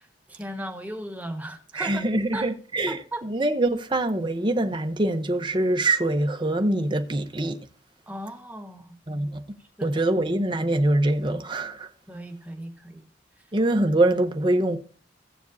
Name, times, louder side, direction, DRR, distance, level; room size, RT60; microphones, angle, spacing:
voice 1, 0.0-2.1 2.3-2.5 2.9-3.2 8.1-9.0 9.8-10.1 12.1-13.1 13.4-13.5, right 1 dB, 10° right, 1.3 m, -37 dB
voice 2, 1.7-7.6 9.1-9.4 9.8-11.9 13.5-14.8, right 1 dB, 25° right, 0.8 m, -24 dB
15.5 x 7.1 x 2.6 m
head